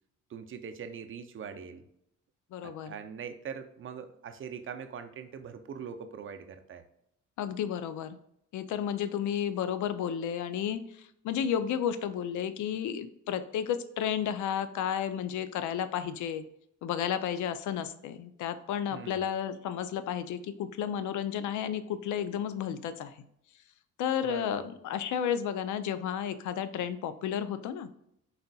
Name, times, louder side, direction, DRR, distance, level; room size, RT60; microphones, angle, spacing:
voice 1, 0.3-1.8 2.6-6.8 18.9-19.2 24.2-24.7, right 7 dB, 45° right, 8 dB, 0.5 m, -42 dB
voice 2, 2.5-3.0 7.4-8.2 8.5-16.4 16.8-23.2 24.0-27.9, left 9 dB, 75° left, 12 dB, 0.5 m, -32 dB
4.1 x 3.9 x 2.3 m, 0.75 s
cardioid pair, 90°, 30 cm